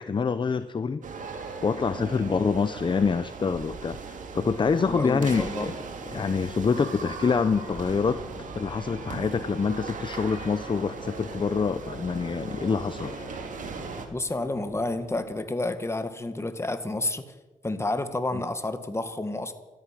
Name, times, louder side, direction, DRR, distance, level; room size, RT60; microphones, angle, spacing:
voice 1, 0.0-5.8 6.0-8.2 8.5-13.1 18.3-18.4, left 5 dB, 35° left, 13 dB, 0.7 m, -26 dB
sound 1, 1.0-14.1, right 5 dB, 70° right, 2.4 m, -38 dB
voice 2, 4.9-5.7 14.1-17.2 17.6-19.5, left 2 dB, 20° left, 9 dB, 1.7 m, -30 dB
sound 2, 6.3-15.4, left 6 dB, 75° left, 1.2 m, -48 dB
13.5 x 10.5 x 9.8 m, 1.1 s
cardioid pair, 80°, 14 cm